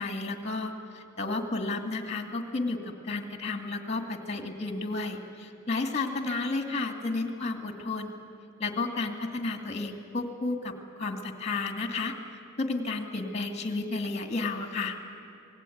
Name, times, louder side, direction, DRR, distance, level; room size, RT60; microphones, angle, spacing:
voice 1, 0.0-2.8 3.0-8.2 8.6-12.1 12.6-15.0, left 3 dB, 30° left, 6 dB, 2.2 m, -32 dB
26.5 x 19.0 x 9.3 m, 2.6 s
head